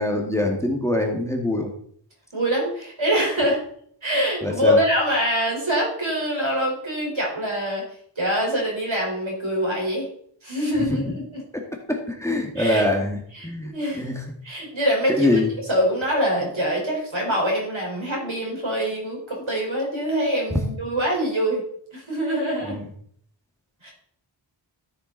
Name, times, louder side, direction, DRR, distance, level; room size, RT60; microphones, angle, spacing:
voice 1, 0.0-1.7 4.4-4.8 10.9-11.2 11.9-14.1 15.1-15.5 20.5-20.6 22.6-22.9, left 1 dB, 5° left, 2 dB, 2.2 m, -24 dB
voice 2, 2.3-3.6 4.0-7.8 8.2-10.1 10.4-11.4 12.6-12.9 13.3-14.1 14.4-15.4 15.7-21.6 21.9-22.8 23.8-23.9, equal, 80° right, -2 dB, 4.8 m, -24 dB
13.5 x 8.1 x 4.1 m, 0.63 s
wide cardioid pair, 55°, 47 cm